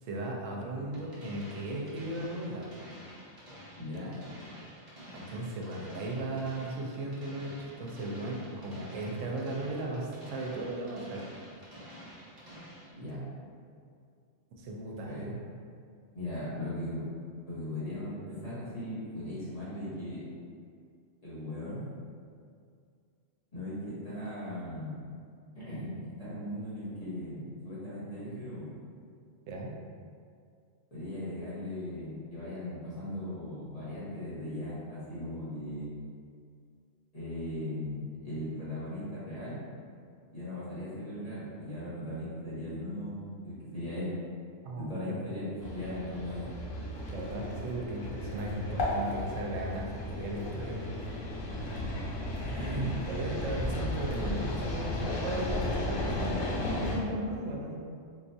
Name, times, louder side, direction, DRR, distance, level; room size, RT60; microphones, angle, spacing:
voice 1, 0.0-2.7 5.1-11.3 14.6-15.1 29.5-29.7 44.6-45.3 47.1-50.9 53.1-57.8, right 1 dB, 80° right, -1 dB, 0.9 m, -36 dB
sound 1, 0.9-12.9, equal, 30° right, 0.7 m, -49 dB
voice 2, 3.8-4.2 12.9-13.2 15.0-15.3 16.1-17.1 17.5-20.2 21.2-21.9 23.5-25.0 25.5-28.7 30.9-35.9 37.1-39.6 40.3-44.1 44.8-46.5 51.7-51.9 52.4-53.0, left 1 dB, 30° left, -12 dB, 1.2 m, -38 dB
sound 2, 45.6-57.0, left 1 dB, 85° left, 1.0 m, -34 dB
3.7 x 2.3 x 2.6 m, 2.2 s
omnidirectional pair, 1.3 m